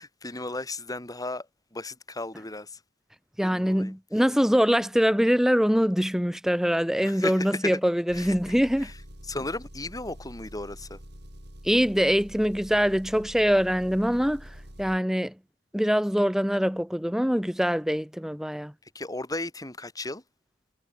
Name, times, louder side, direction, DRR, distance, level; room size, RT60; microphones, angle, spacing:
voice 1, 0.0-1.5 1.7-2.8 3.4-3.9 7.0-7.8 8.1-8.3 8.8-8.9 9.3-11.0 18.9-20.2, left 2 dB, 20° left, 3.8 m, -35 dB
voice 2, 3.4-8.9 11.6-14.5 14.8-15.3 15.7-18.7, equal, ahead, 1.3 m, -23 dB
Engine, 8.1-15.0, equal, 60° right, 7.3 m, -46 dB
head